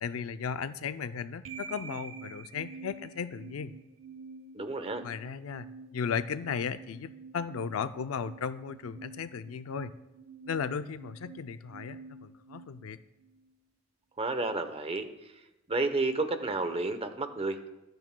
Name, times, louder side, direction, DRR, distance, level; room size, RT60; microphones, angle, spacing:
voice 1, 0.0-3.7 5.0-5.7 5.9-9.9 10.5-13.0, left 6 dB, 85° left, 11 dB, 0.4 m, -35 dB
sound 1, 1.4-13.5, right 5 dB, 70° right, 0.7 m, -48 dB
voice 2, 4.5-5.0 14.2-15.1 15.7-17.6, right 3 dB, 30° right, 9 dB, 0.8 m, -31 dB
24.5 x 8.9 x 2.2 m, 1.0 s
head